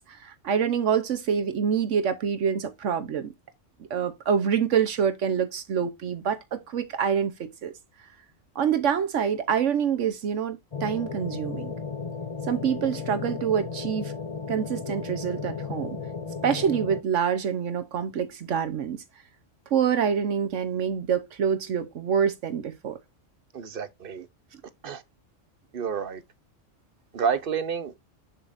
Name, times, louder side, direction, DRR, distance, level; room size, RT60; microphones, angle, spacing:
voice 1, 0.1-3.3 3.9-7.7 8.5-11.7 12.5-14.1 14.5-16.0 16.4-19.0 19.7-23.0, right 7 dB, 75° right, 1.2 m, -26 dB
sound 1, 10.7-17.0, left 5 dB, 35° left, 0.6 m, -34 dB
voice 2, 23.5-24.3 24.8-25.0 25.7-26.2 27.1-27.9, right 6 dB, 50° right, 0.9 m, -29 dB
7.2 x 7.0 x 2.6 m
omnidirectional pair, 1.3 m